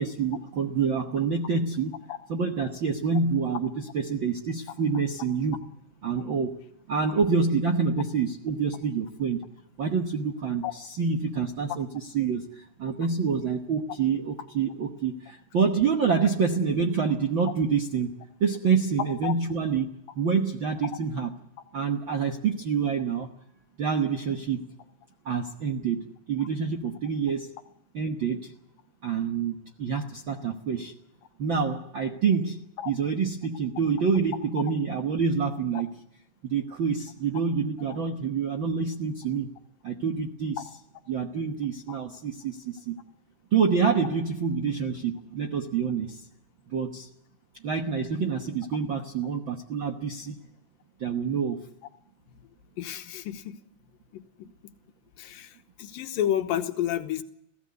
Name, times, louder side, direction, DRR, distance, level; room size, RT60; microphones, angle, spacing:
voice 1, 0.0-1.9 2.3-5.6 6.0-9.4 9.8-21.3 21.7-23.3 23.8-24.6 25.2-27.5 27.9-28.5 29.0-30.9 31.4-32.6 32.8-35.9 36.4-39.5 39.8-40.6 41.1-42.9 43.5-46.2 46.7-47.1 47.6-50.4 51.0-51.6, right 5 dB, 65° right, 4 dB, 1.2 m, -27 dB
voice 2, 52.8-53.6 54.1-54.5 55.2-55.5 55.8-57.2, left 11 dB, 80° left, 8 dB, 2.8 m, -30 dB
21.5 x 15.5 x 9.5 m, 0.82 s
omnidirectional pair, 4.0 m